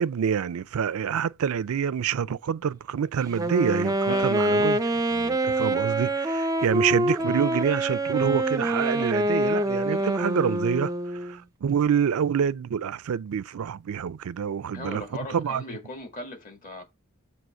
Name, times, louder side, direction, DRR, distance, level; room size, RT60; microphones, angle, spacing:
voice 1, 0.0-4.8 5.1-15.0 15.3-15.6, right 7 dB, 70° right, 0.4 m, -27 dB
Wind instrument woodwind instrument, 3.3-11.4, right 1 dB, 15° right, 0.5 m, -25 dB
voice 2, 4.0-4.7 8.9-9.1 9.8-10.4 14.7-16.8, left 2 dB, 35° left, 2.0 m, -39 dB
7.6 x 3.0 x 6.0 m
head